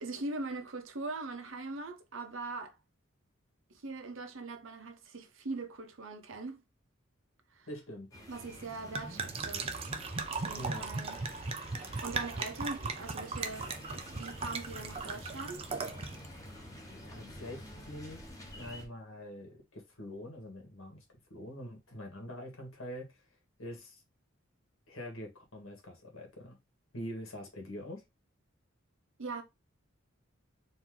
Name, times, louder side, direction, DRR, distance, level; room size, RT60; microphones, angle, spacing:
voice 1, 0.0-2.8 3.7-6.6 7.5-7.7 8.3-9.7 10.3-11.2 12.0-15.6 29.2-29.4, right 3 dB, 70° right, 0.8 m, -41 dB
voice 2, 7.7-8.1 10.6-10.9 17.0-18.2 18.5-21.0 21.3-23.2 23.6-24.0 24.9-26.6 26.9-28.0, equal, 85° left, 1.8 m, -44 dB
sound 1, 8.1-18.9, left 1 dB, 15° left, 1.1 m, -49 dB
sound 2, 8.4-16.3, right 4 dB, 30° right, 0.4 m, -38 dB
4.3 x 2.8 x 3.7 m
head